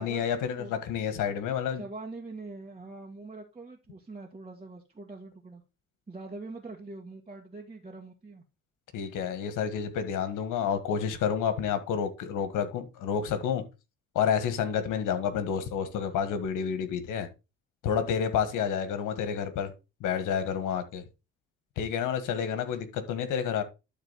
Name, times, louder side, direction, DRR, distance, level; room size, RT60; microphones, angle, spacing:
voice 1, 0.0-1.8 8.9-13.6 14.1-17.3 17.8-19.7 20.0-21.0 21.8-23.6, left 7 dB, 90° left, 1.8 m, -29 dB
voice 2, 1.7-5.6 6.1-8.4, right 3 dB, 20° right, 2.0 m, -43 dB
12.0 x 4.1 x 4.1 m
cardioid pair, 90°, 30 cm